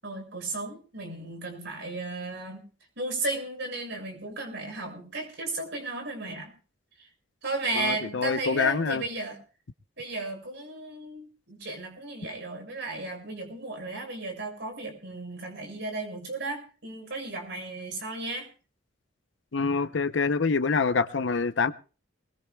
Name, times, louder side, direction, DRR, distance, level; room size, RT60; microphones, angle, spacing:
voice 1, 0.0-2.6 3.0-6.5 7.0-7.1 7.4-9.4 10.0-18.5, right 2 dB, 55° right, 3 dB, 6.5 m, -34 dB
voice 2, 7.8-9.0 19.5-21.7, left 4 dB, 60° left, 12 dB, 0.7 m, -26 dB
23.0 x 21.5 x 2.3 m, 0.36 s
head